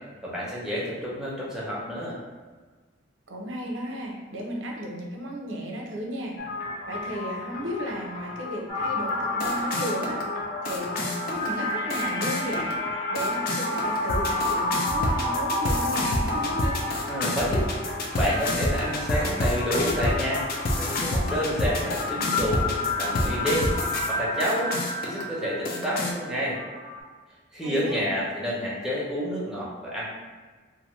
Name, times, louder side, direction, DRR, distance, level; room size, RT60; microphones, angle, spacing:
voice 1, 0.2-2.2 17.1-17.7 18.1-20.4 20.8-24.7 25.0-26.6 27.5-30.0, equal, 5° right, -7 dB, 0.7 m, -29 dB
voice 2, 3.3-6.4 6.9-10.2 10.6-12.8 13.1-16.8 27.6-28.0, equal, 85° right, 0 dB, 0.6 m, -34 dB
sound 1, 6.4-24.1 24.4-25.2 25.7-26.1, left 2 dB, 50° left, 0.4 m, -30 dB
sound 2, 8.7-27.0, left 1 dB, 30° left, 0.8 m, -31 dB
2.6 x 2.5 x 3.0 m, 1.5 s
head